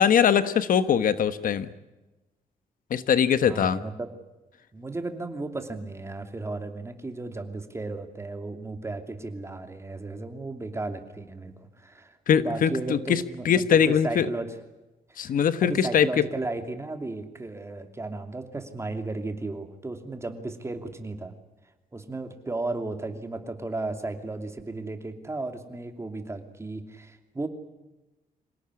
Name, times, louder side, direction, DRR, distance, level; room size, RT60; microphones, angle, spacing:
voice 1, 0.0-1.7 2.9-3.8 12.3-14.3 15.2-16.2, left 8 dB, 65° left, 12 dB, 1.3 m, -22 dB
voice 2, 3.4-4.1 4.7-14.5 15.1-15.4 15.6-21.3 21.9-27.5, right 2 dB, 20° right, 6 dB, 2.8 m, -35 dB
26.5 x 18.0 x 9.7 m, 1.1 s
cardioid pair, 130°, 15 cm